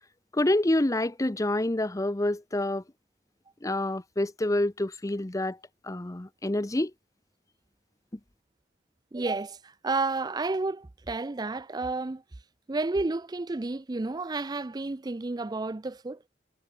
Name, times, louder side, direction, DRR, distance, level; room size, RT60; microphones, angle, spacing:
voice 1, 0.3-2.8 3.6-5.6 5.8-6.9, left 1 dB, 20° left, 0.7 m, -27 dB
voice 2, 9.1-12.2 12.7-16.2, right 3 dB, 20° right, 0.5 m, -31 dB
head